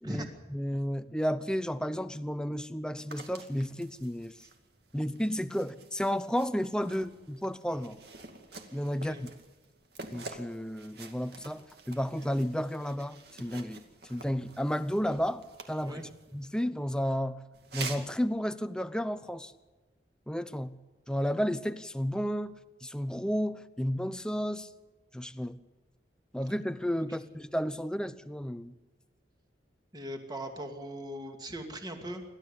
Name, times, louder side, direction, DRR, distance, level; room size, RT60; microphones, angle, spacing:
voice 1, 0.0-4.4 4.9-8.0 8.7-9.3 10.1-11.6 11.9-13.8 14.1-16.0 16.3-17.4 17.7-19.5 20.3-20.8 21.1-22.5 22.8-24.7 25.1-25.6 26.3-28.7, equal, 5° left, 12 dB, 0.7 m, -32 dB
sound 1, 3.1-16.5 17.5-18.1, right 4 dB, 55° right, 2.5 m, -48 dB
voice 2, 29.9-32.2, equal, 20° right, 4 dB, 2.5 m, -40 dB
28.0 x 13.0 x 8.4 m, 1.2 s
head